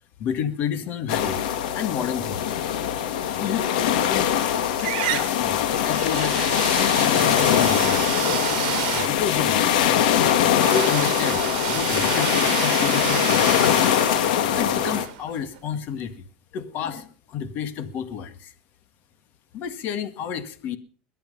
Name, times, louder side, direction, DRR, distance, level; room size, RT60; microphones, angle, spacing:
voice 1, 0.2-2.6 3.4-4.3 4.7-6.4 6.8-8.2 8.9-9.9 10.7-13.7 14.5-16.2 16.5-18.5 19.5-20.8, left 8 dB, 45° left, 12 dB, 1.9 m, -31 dB
sound 1, 1.1-15.1, left 10 dB, 85° left, 2.1 m, -22 dB
sound 2, 3.9-4.5 4.8-15.7, right 16 dB, 75° right, 1.3 m, -30 dB
22.0 x 8.9 x 5.5 m, 0.42 s
supercardioid pair, 150°, 4 cm